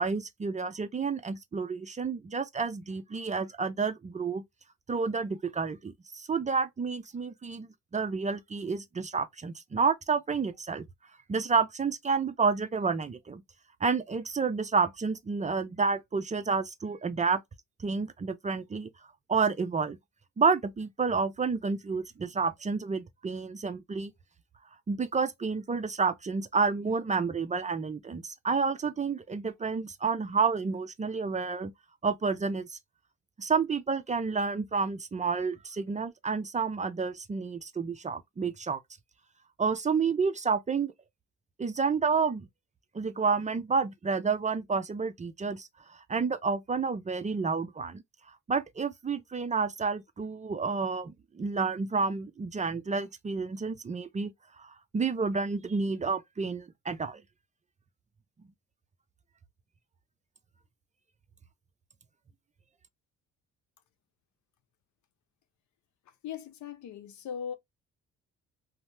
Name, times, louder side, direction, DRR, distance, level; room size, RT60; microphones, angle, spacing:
voice 1, 0.0-4.4 4.9-10.9 11.3-13.4 13.8-17.4 17.8-18.9 19.3-20.0 20.4-24.1 24.9-31.7 32.0-32.8 33.4-38.8 39.6-40.9 41.6-42.5 42.9-48.0 48.5-54.3 54.6-57.2, right 5 dB, 25° right, 0.5 m, -30 dB
voice 2, 66.2-67.6, left 8 dB, 70° left, 0.7 m, -39 dB
2.7 x 2.0 x 3.2 m
cardioid pair, 90°, 30 cm